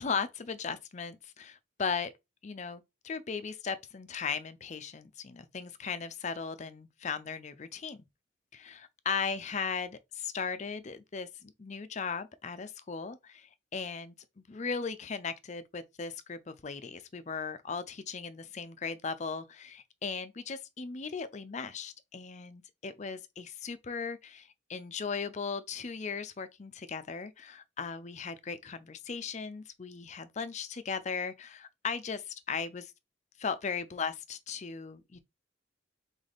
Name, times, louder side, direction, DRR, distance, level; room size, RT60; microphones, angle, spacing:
voice 1, 0.0-2.1 2.4-8.0 8.5-32.9 33.4-35.2, left 5 dB, 35° left, 0.5 m, -37 dB
3.8 x 3.4 x 4.0 m
head